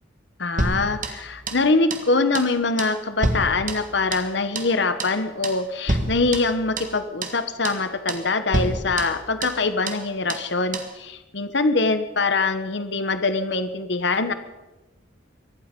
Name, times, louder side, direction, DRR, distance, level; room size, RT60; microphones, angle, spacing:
voice 1, 0.4-14.3, left 3 dB, 60° left, 10 dB, 1.1 m, -23 dB
sound 1, 0.6-1.7 1.9-2.1 2.3-2.5 2.8-4.3 4.6-4.7 5.0-5.2 5.4-5.6 5.9-7.0 7.2-7.4 7.6-7.8 8.1-8.3 8.5-9.6 9.9-10.0 10.3-10.5 10.7-10.9, right 2 dB, 40° right, 1.6 m, -28 dB
23.5 x 11.5 x 5.3 m, 1.1 s
head